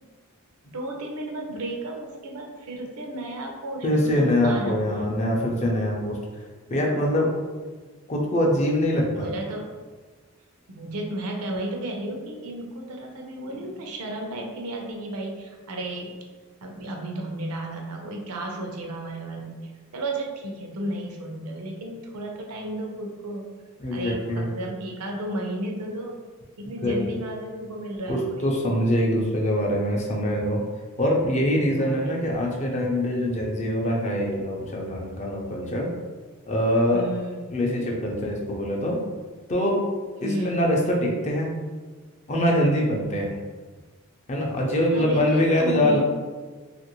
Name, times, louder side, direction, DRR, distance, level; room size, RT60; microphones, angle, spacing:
voice 1, 0.7-5.1 9.1-9.7 10.7-16.2 16.6-23.5 23.9-26.2 26.6-28.5 31.8-32.2 36.9-37.5 40.2-40.7 44.9-46.0, right 1 dB, 80° right, 1 dB, 0.6 m, -33 dB
voice 2, 3.8-6.2 6.7-7.3 8.1-9.3 23.8-24.5 26.8-27.1 28.1-30.6 31.0-35.9 36.5-37.1 37.5-39.0 39.5-39.8 40.2-41.5 42.3-43.3 44.3-46.0, left 1 dB, 30° left, -1 dB, 0.5 m, -23 dB
2.9 x 2.5 x 2.9 m, 1.4 s
head